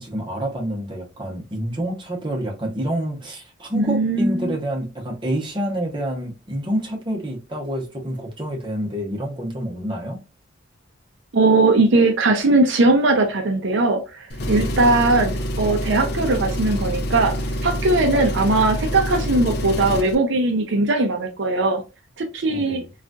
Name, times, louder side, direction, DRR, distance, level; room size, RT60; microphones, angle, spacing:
voice 1, 0.0-10.2 14.5-14.8 22.5-22.9, right 1 dB, 25° right, 0.8 m, -28 dB
voice 2, 3.7-4.6 11.3-21.8 22.2-22.8, right 2 dB, 60° right, 0.5 m, -19 dB
Engine, 14.3-20.1, equal, 50° left, 0.5 m, -26 dB
3.8 x 2.4 x 2.2 m
head